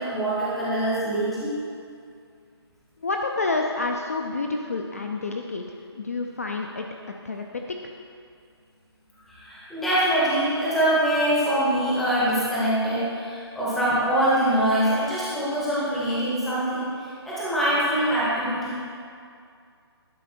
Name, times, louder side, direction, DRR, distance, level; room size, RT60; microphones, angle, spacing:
voice 1, 0.0-1.5 9.3-16.9 17.2-18.8, right 1 dB, ahead, -9 dB, 0.7 m, -24 dB
voice 2, 3.0-7.8, left 3 dB, 35° left, 2 dB, 0.4 m, -29 dB
11.0 x 4.9 x 4.3 m, 2.3 s
hypercardioid pair, 175°, 14 cm